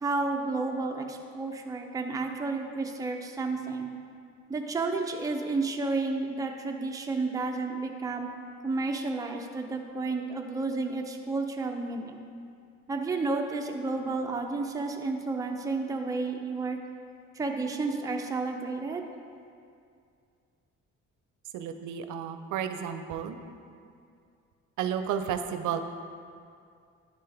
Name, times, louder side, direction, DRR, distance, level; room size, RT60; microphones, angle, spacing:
voice 1, 0.0-3.9 4.5-8.3 8.6-12.2 12.9-16.8 17.3-19.0, right 3 dB, 10° right, 2 dB, 0.5 m, -31 dB
voice 2, 21.5-23.4 24.8-25.8, right 8 dB, 80° right, 8 dB, 0.5 m, -32 dB
10.0 x 3.4 x 3.4 m, 2.3 s
cardioid pair, 90°, 30 cm